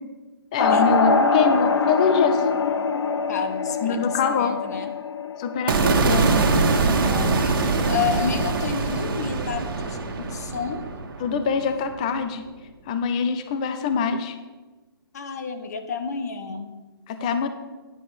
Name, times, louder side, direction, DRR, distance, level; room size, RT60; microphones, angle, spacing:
voice 1, 0.5-2.4 3.8-4.6 5.4-6.3 11.2-12.4 12.9-14.4 17.1-17.5, left 5 dB, 15° left, 9 dB, 0.4 m, -24 dB
sound 1, 0.6-5.8, left 4 dB, 85° left, 1.0 m, -23 dB
voice 2, 3.3-4.9 7.0-11.0 15.1-16.7, left 6 dB, 40° left, 8 dB, 0.9 m, -31 dB
sound 2, 5.7-11.9, right 3 dB, 55° right, 1.6 m, -23 dB
9.8 x 5.3 x 7.7 m, 1.2 s
hypercardioid pair, 170°, 13 cm